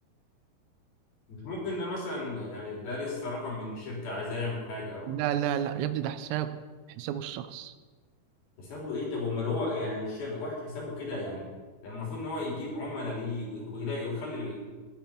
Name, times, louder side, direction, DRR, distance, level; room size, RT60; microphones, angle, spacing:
voice 1, 1.3-5.1 8.6-11.4 11.8-14.6, left 2 dB, 50° left, -4 dB, 5.1 m, -34 dB
voice 2, 5.1-6.5 7.0-7.7, right 10 dB, 90° right, 11 dB, 3.4 m, -31 dB
19.0 x 9.0 x 4.5 m, 1.3 s
omnidirectional pair, 5.9 m